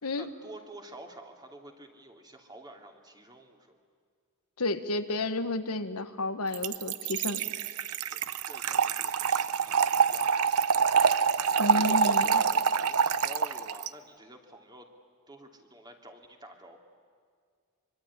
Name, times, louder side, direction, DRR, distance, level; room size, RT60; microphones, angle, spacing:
voice 1, 0.2-3.8 8.1-10.3 11.6-14.9 15.3-16.8, right 1 dB, 20° right, 3 dB, 2.8 m, -49 dB
voice 2, 4.6-7.4 11.6-12.4, left 2 dB, 80° left, 9 dB, 1.5 m, -31 dB
Trickle dribble / Fill (with liquid), 6.5-13.9, right 6 dB, 90° right, 0.8 m, -26 dB
25.0 x 24.5 x 9.8 m, 2.1 s
head